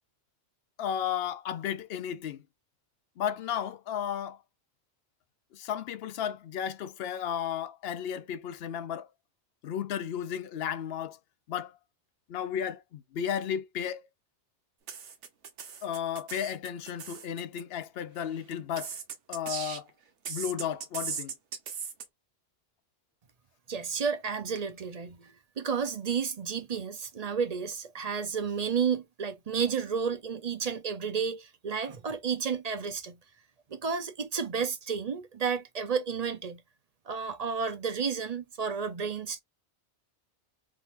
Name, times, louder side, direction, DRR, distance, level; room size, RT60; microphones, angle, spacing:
voice 1, 0.8-2.4 3.2-4.4 5.5-9.1 9.6-11.2 11.5-11.8 12.3-14.1 15.8-19.0 19.3-19.8 20.3-21.3, left 9 dB, 65° left, 0.8 m, -34 dB
sound 1, 14.9-17.6 18.5-19.9 20.2-22.0, right 6 dB, 80° right, 1.2 m, -38 dB
voice 2, 23.7-33.2 33.7-36.6 37.1-39.4, right 6 dB, 45° right, 0.6 m, -31 dB
3.6 x 2.8 x 2.6 m
omnidirectional pair, 1.2 m